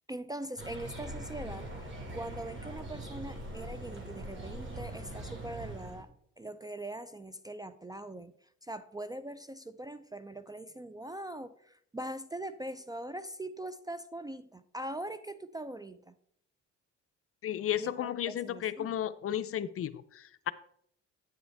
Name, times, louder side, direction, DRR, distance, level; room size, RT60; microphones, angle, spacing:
voice 1, 0.1-1.9 2.1-6.1 6.4-8.3 8.6-16.2 17.8-18.9, right 1 dB, 15° right, 13 dB, 0.3 m, -42 dB
sound 1, 0.6-6.0, right 1 dB, 40° right, 2.3 m, -42 dB
voice 2, 17.4-20.5, left 11 dB, 50° left, 14 dB, 0.5 m, -34 dB
8.8 x 7.9 x 3.4 m, 0.68 s
cardioid pair, 90°, 30 cm